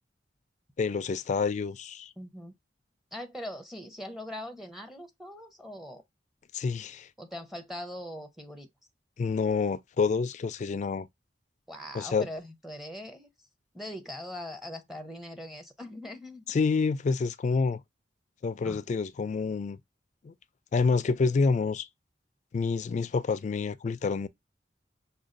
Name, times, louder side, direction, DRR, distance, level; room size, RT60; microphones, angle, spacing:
voice 1, 0.8-2.1 6.5-7.1 9.2-11.1 11.9-12.3 16.5-17.8 18.4-19.8 20.2-20.3 20.7-21.9 22.5-24.3, left 4 dB, 40° left, 0.3 m, -28 dB
voice 2, 2.2-2.5 3.1-6.0 7.2-8.7 11.7-13.3 13.7-16.5 18.6-18.8, left 1 dB, ahead, 0.6 m, -41 dB
6.1 x 2.2 x 2.5 m
head